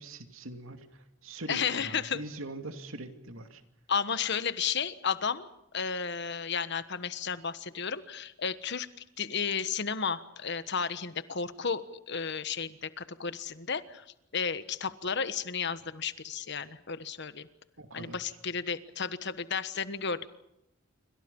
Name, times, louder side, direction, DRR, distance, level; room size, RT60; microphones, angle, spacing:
voice 1, 0.0-3.6 17.8-18.4, right 2 dB, 85° right, 7 dB, 2.5 m, -43 dB
voice 2, 1.5-2.2 3.9-5.5 5.7-8.9 9.2-14.0 14.3-17.5 17.9-20.3, left 6 dB, 60° left, 13 dB, 1.3 m, -33 dB
28.0 x 25.0 x 5.5 m, 0.81 s
head